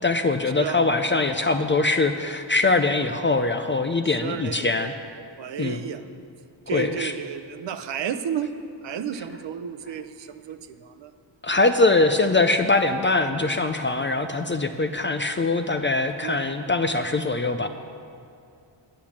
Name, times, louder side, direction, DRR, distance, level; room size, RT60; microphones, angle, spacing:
voice 1, 0.0-4.9 5.6-5.8 6.7-7.1 11.4-17.7, left 3 dB, 30° left, 8 dB, 0.3 m, -22 dB
voice 2, 4.2-4.7 5.4-6.0 6.7-8.5 8.8-11.1 16.2-16.4, right 8 dB, 65° right, 9 dB, 0.7 m, -32 dB
10.0 x 8.6 x 7.2 m, 2.4 s
wide cardioid pair, 160°, 47 cm